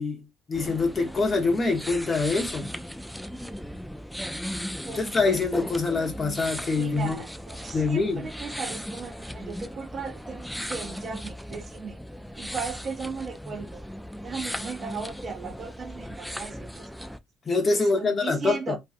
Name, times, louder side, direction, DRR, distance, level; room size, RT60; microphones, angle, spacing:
voice 1, 0.0-2.7 4.9-7.2 7.7-8.3 17.4-18.8, left 3 dB, 40° left, 0.8 m, -25 dB
sound 1, 0.5-17.2, equal, ahead, 0.3 m, -37 dB
voice 2, 4.9-5.2 6.8-12.0 12.4-13.8 14.2-17.1 17.7-18.8, right 5 dB, 45° right, 0.6 m, -37 dB
2.5 x 2.3 x 2.3 m
hypercardioid pair, 55°, 0 cm